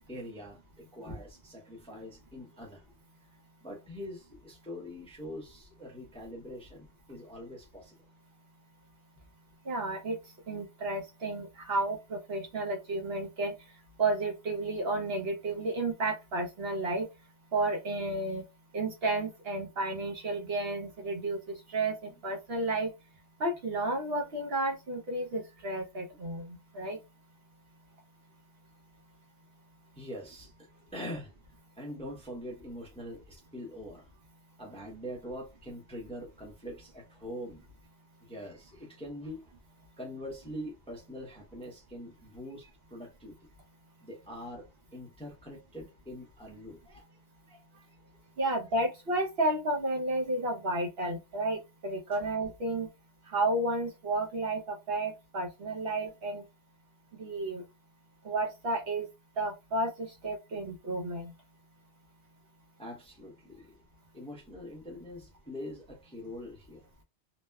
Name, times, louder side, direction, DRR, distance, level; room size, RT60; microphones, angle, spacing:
voice 1, 0.1-2.8 3.6-8.0 29.9-31.3 31.8-34.1 34.6-37.7 38.2-39.5 40.0-43.4 44.0-47.1 47.5-48.0 52.1-52.3 62.8-63.7 64.1-66.9, equal, 5° left, 0.6 m, -44 dB
voice 2, 9.7-10.2 10.5-13.5 14.0-17.1 17.5-18.4 18.7-21.4 21.7-22.9 23.4-27.0 48.4-52.9 53.3-56.4 57.2-57.6 58.2-59.1 59.4-61.3, right 2 dB, 65° right, 0.9 m, -32 dB
2.9 x 2.1 x 2.2 m
omnidirectional pair, 1.1 m